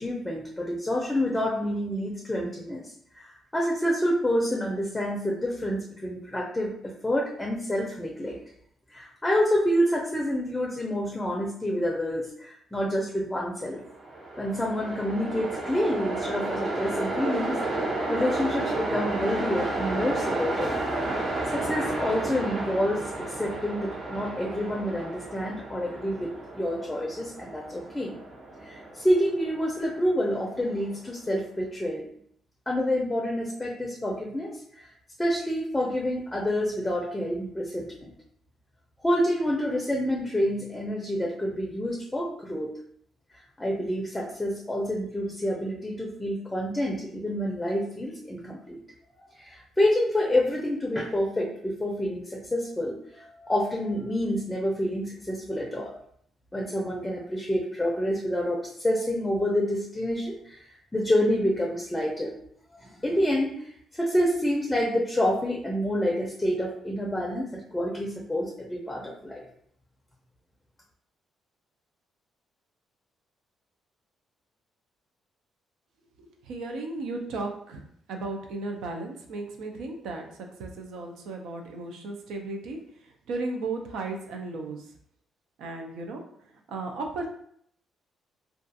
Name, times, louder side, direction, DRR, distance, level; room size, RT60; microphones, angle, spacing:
voice 1, 0.0-8.4 8.9-13.8 14.4-17.6 18.1-20.7 21.5-28.2 28.6-32.0 32.7-34.9 35.2-38.1 39.0-42.8 43.6-48.8 49.3-55.9 56.5-60.6 60.9-62.3 62.8-63.6 63.9-69.4, equal, 10° left, -2 dB, 0.5 m, -28 dB
Train, 13.9-31.1, right 2 dB, 50° right, 0.7 m, -32 dB
voice 2, 76.2-77.8 78.1-82.8 83.0-84.8 85.6-86.2 86.7-87.3, right 3 dB, 85° right, 3 dB, 0.4 m, -35 dB
2.3 x 2.3 x 2.6 m, 0.66 s
cardioid pair, 90°, 0 cm